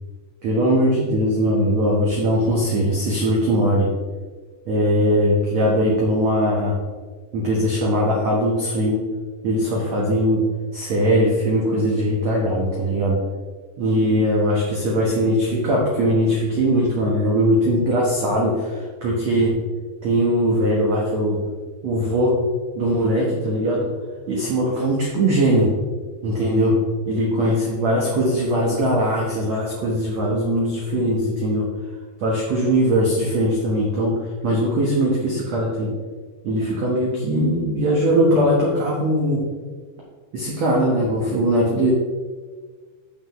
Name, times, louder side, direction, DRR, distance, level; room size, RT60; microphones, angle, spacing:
voice 1, 0.4-3.9 4.7-6.8 7.3-9.0 9.4-10.4 10.7-13.2 13.8-19.6 20.0-21.4 21.8-22.3 22.7-23.9 24.3-25.7 26.2-26.8 27.1-31.7 32.2-34.1 34.4-35.9 36.4-39.5 40.3-41.9, equal, 85° right, -3 dB, 1.5 m, -20 dB
13.5 x 5.7 x 3.1 m, 1.5 s
omnidirectional pair, 5.1 m